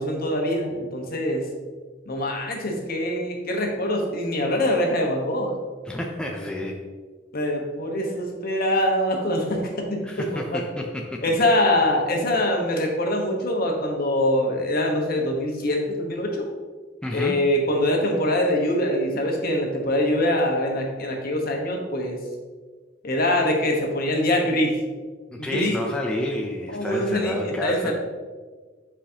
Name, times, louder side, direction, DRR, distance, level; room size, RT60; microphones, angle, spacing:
voice 1, 0.0-1.4 2.1-5.5 7.3-10.6 11.2-16.5 17.1-22.2 23.0-24.7 25.4-25.7 26.7-27.9, left 1 dB, 55° left, 1 dB, 1.1 m, -24 dB
voice 2, 5.8-6.8 10.0-11.2 17.0-17.5 25.3-27.9, left 1 dB, 5° left, 0 dB, 0.5 m, -30 dB
8.1 x 4.9 x 2.8 m, 1.4 s
head